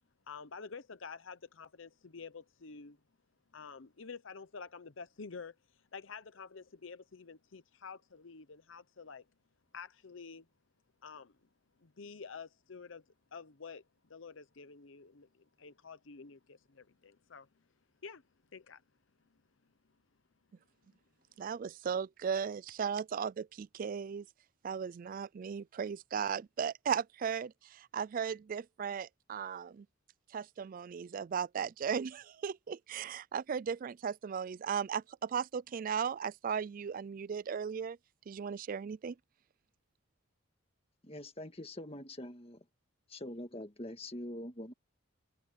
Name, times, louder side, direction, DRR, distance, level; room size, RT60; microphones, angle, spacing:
voice 1, 0.3-3.0 3.5-5.6 5.9-9.2 9.7-10.5 11.0-11.3 11.8-13.0 13.3-13.8 14.1-17.5 18.0-18.2 18.5-18.8, left 5 dB, 65° left, 0.8 m, -49 dB
voice 2, 21.4-24.3 24.6-29.9 30.3-38.0 38.3-39.1, right 7 dB, 40° right, 0.3 m, -36 dB
voice 3, 41.0-42.6 43.1-44.7, left 1 dB, 30° left, 1.8 m, -44 dB
head